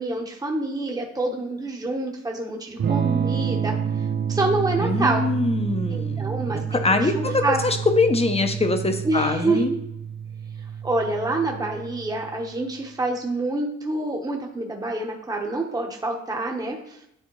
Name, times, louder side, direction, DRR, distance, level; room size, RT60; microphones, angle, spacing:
voice 1, 0.0-3.8 4.3-5.2 5.9-7.6 9.0-9.8 10.8-17.0, right 2 dB, 10° right, 1 dB, 1.0 m, -27 dB
Electric guitar / Strum, 2.8-12.6, right 7 dB, 35° right, 0.4 m, -28 dB
voice 2, 4.8-9.7, left 3 dB, 20° left, 7 dB, 0.8 m, -23 dB
9.6 x 3.4 x 3.1 m, 0.80 s
cardioid pair, 90°, 30 cm